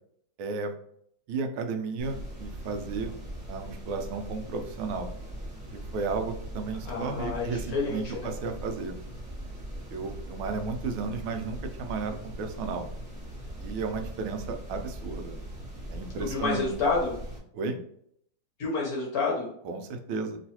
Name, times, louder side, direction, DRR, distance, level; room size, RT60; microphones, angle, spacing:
voice 1, 0.4-0.7 1.3-3.1 3.5-5.1 5.7-9.0 9.9-12.9 13.6-15.4 15.9-16.7 17.5-17.8 19.6-20.4, right 4 dB, 90° right, 6 dB, 1.4 m, -33 dB
sound 1, 2.0-17.4, right 1 dB, 5° right, 1.0 m, -40 dB
voice 2, 6.9-8.3 16.2-17.2 18.6-19.5, left 4 dB, 65° left, -2 dB, 0.9 m, -29 dB
3.1 x 3.0 x 2.8 m, 0.68 s
omnidirectional pair, 2.2 m